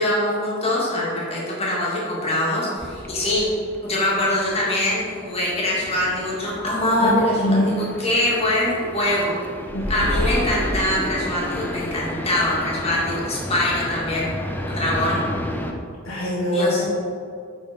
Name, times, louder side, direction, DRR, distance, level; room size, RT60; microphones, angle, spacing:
voice 1, 0.0-3.5 3.8-9.3 9.9-14.3 14.7-15.2 16.5-16.8, left 1 dB, 30° left, -6 dB, 2.0 m, -23 dB
sound 1, 2.8-15.7, left 1 dB, 10° left, 0.5 m, -31 dB
voice 2, 7.4-7.7 9.7-10.2 16.0-16.9, left 1 dB, 70° left, -4 dB, 1.4 m, -23 dB
8.7 x 4.2 x 5.1 m, 2.3 s
head